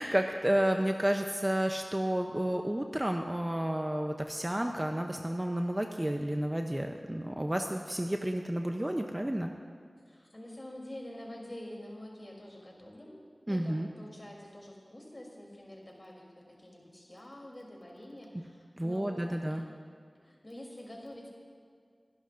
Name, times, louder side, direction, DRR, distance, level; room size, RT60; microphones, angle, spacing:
voice 1, 0.0-9.5 13.5-13.9 18.8-19.6, right 1 dB, 20° right, 4 dB, 0.6 m, -31 dB
voice 2, 10.1-13.2 13.5-19.7 20.2-21.3, left 1 dB, 30° left, -2 dB, 3.2 m, -47 dB
23.5 x 11.0 x 2.6 m, 2.1 s
wide cardioid pair, 60°, 0 cm